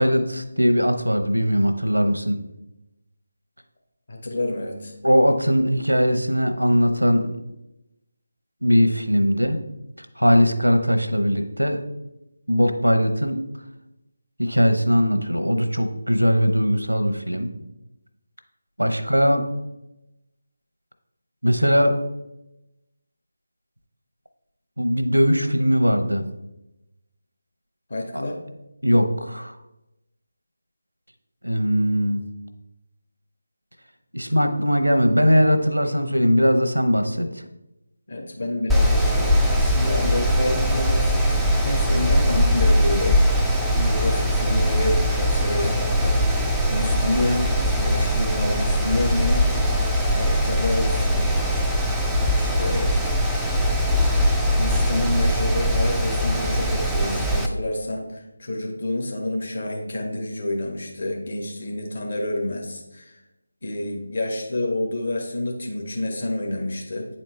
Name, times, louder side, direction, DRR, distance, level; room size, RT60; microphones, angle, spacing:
voice 1, 0.0-2.4 5.0-7.4 8.6-9.6 10.0-11.8 12.5-13.4 14.4-17.5 18.8-19.5 21.4-22.0 24.8-26.2 28.1-28.2 28.8-29.6 31.4-32.2 34.1-37.4, equal, 85° right, 7 dB, 0.8 m, -20 dB
voice 2, 4.1-4.9 27.9-28.4 38.1-43.2 43.7-46.2 46.7-49.6 50.1-51.3 52.3-52.9 54.5-63.1 63.6-67.1, left 1 dB, 50° left, 1 dB, 1.3 m, -28 dB
Mechanical fan, 38.7-57.5, equal, ahead, 0.3 m, -21 dB
8.7 x 4.3 x 3.2 m, 0.92 s
figure-of-eight pair, 160°, 0 cm